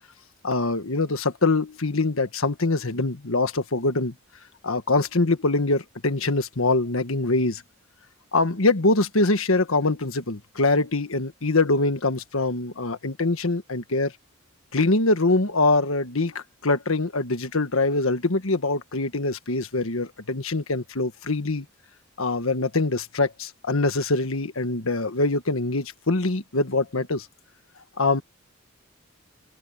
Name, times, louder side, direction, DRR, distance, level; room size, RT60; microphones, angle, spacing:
voice 1, 0.4-4.1 4.6-7.6 8.3-14.1 14.7-21.6 22.2-27.3 28.0-28.2, left 2 dB, 80° left, 1.5 m, -24 dB
head